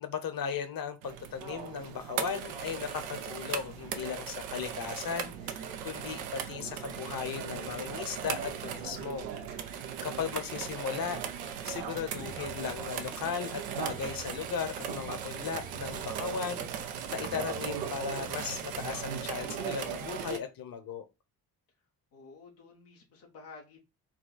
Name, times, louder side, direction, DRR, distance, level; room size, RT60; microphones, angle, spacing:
voice 1, 0.0-11.2 11.6-16.7 17.1-21.1, left 7 dB, 45° left, 0.9 m, -37 dB
sound 1, 1.0-20.4, right 8 dB, 85° right, 0.6 m, -38 dB
sound 2, 12.2-18.8, right 6 dB, 20° right, 0.3 m, -49 dB
voice 2, 22.1-23.8, left 4 dB, 90° left, 1.1 m, -51 dB
4.3 x 2.3 x 3.9 m
hypercardioid pair, 40°, 49 cm